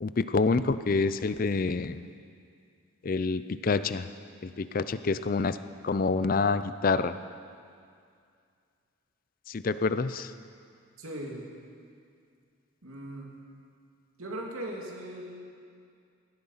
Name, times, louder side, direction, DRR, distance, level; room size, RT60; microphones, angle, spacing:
voice 1, 0.0-2.1 3.0-4.1 4.4-5.6 5.8-7.2 9.5-10.3, left 4 dB, 40° left, 13 dB, 0.4 m, -27 dB
voice 2, 11.0-11.5 12.8-13.3 14.2-15.4, right 1 dB, 90° right, -1 dB, 2.7 m, -38 dB
17.5 x 12.5 x 5.7 m, 2.3 s
head